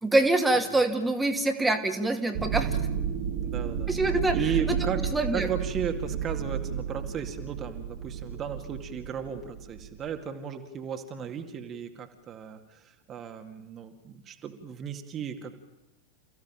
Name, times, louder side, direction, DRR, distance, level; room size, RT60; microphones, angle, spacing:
voice 1, 0.0-2.7 3.9-4.4 4.7-4.8 5.1-5.5, right 2 dB, 10° right, 5 dB, 2.4 m, -25 dB
sound 1, 2.3-10.1, right 7 dB, 45° right, 2.6 m, -32 dB
voice 2, 2.5-2.9 3.4-3.9 4.3-5.1 5.3-15.5, right 7 dB, 30° right, 6 dB, 2.2 m, -35 dB
29.0 x 16.0 x 8.9 m, 1.0 s
figure-of-eight pair, 90°, 0 cm